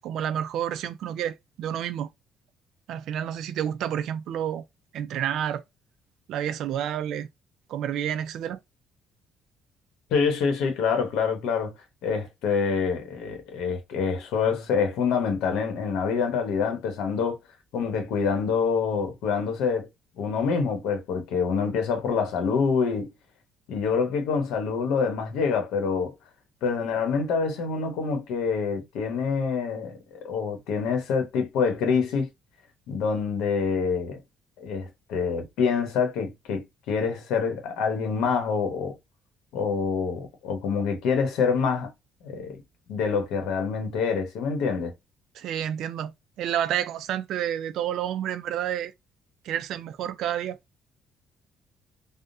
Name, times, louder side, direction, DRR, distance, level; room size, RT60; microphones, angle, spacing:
voice 1, 0.0-2.1 2.9-4.6 4.9-5.6 6.3-7.3 7.7-8.6 45.3-48.9 49.4-50.6, right 10 dB, 60° right, 0.3 m, -29 dB
voice 2, 10.1-11.7 12.0-17.4 17.7-19.9 20.2-23.1 23.7-26.1 26.6-30.0 30.2-32.3 32.9-34.2 34.6-38.9 39.5-41.9 42.2-42.6 42.9-44.9, left 5 dB, 90° left, 1.0 m, -26 dB
3.5 x 2.1 x 2.6 m
cardioid pair, 170°, 0 cm